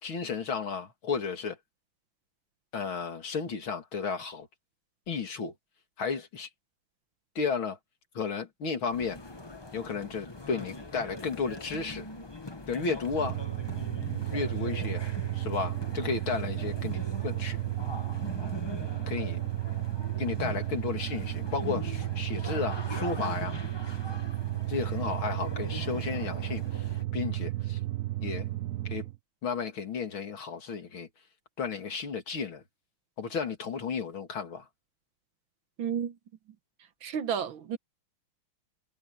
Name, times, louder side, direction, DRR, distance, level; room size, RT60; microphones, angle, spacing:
voice 1, 0.0-1.6 2.7-4.5 5.1-5.5 6.0-6.5 7.3-7.8 8.1-9.2 9.7-12.1 12.7-13.4 14.3-15.0 15.3-17.6 19.1-19.4 20.2-23.5 24.7-26.8 27.1-27.8 28.2-28.5 28.8-29.1 29.4-31.1 31.6-32.6 33.2-34.7, left 5 dB, 70° left, 3.3 m, -33 dB
sound 1, 8.9-27.0, left 2 dB, 20° left, 0.7 m, -42 dB
sound 2, 13.1-29.2, right 16 dB, 85° right, 0.7 m, -33 dB
voice 2, 35.8-36.1 37.0-37.8, right 8 dB, 70° right, 1.9 m, -31 dB
omnidirectional pair, 2.3 m